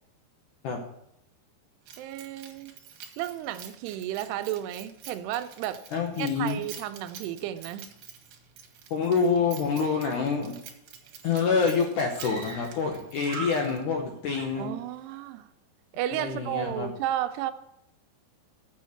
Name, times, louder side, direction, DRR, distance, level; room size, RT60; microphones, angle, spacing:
Keys jangling, 1.9-14.0, right 8 dB, 65° right, 2.4 m, -48 dB
voice 1, 2.0-2.7 3.2-5.8 6.2-7.9 14.6-15.5 15.9-17.5, right 12 dB, 80° right, 10 dB, 2.5 m, -33 dB
voice 2, 5.9-6.6 8.9-10.6 11.2-14.7 16.1-16.9, left 5 dB, 80° left, 2 dB, 1.8 m, -27 dB
Screaming, 11.0-11.1 11.3-11.4 12.1-12.9 13.2-14.0 14.3-15.2, right 3 dB, 50° right, 2.1 m, -41 dB
7.3 x 7.0 x 7.6 m, 0.80 s
omnidirectional pair, 5.0 m